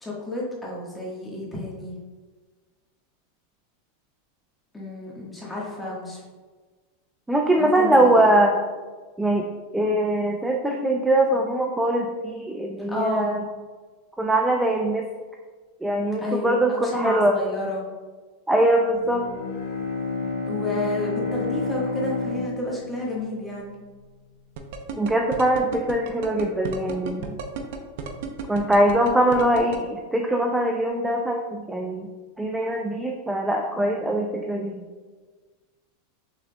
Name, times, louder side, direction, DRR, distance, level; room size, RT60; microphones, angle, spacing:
voice 1, 0.0-1.9 4.7-6.2 7.6-8.3 12.9-13.4 16.2-17.8 20.4-23.7, left 2 dB, 10° left, -5 dB, 1.4 m, -30 dB
voice 2, 7.3-8.6 9.2-9.5 9.7-13.4 14.2-15.1 15.8-17.4 18.5-19.3 25.0-27.4 28.5-32.1 32.4-34.8, right 1 dB, 5° right, 1 dB, 0.4 m, -22 dB
Bowed string instrument, 18.9-23.7, left 3 dB, 90° left, 1.5 m, -30 dB
sound 1, 24.6-29.8, right 7 dB, 65° right, 0.5 m, -33 dB
6.2 x 3.6 x 2.2 m, 1.4 s
supercardioid pair, 135°, 0 cm